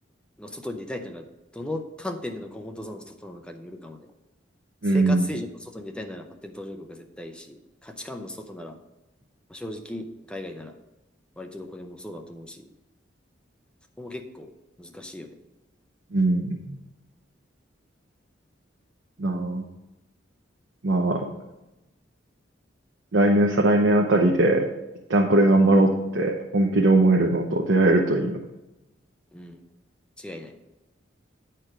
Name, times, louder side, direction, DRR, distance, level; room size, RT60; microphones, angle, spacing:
voice 1, 0.4-1.3 1.5-4.1 4.8-8.8 9.5-10.8 11.4-12.7 14.0-14.5 14.8-15.3 29.3-29.6 30.2-30.5, left 1 dB, 5° left, 4 dB, 0.6 m, -37 dB
voice 2, 4.8-5.3 16.1-16.8 19.2-19.6 20.8-21.3 23.1-24.7 25.1-28.4, right 2 dB, 75° right, 1 dB, 0.8 m, -20 dB
9.4 x 4.5 x 4.9 m, 1.0 s
head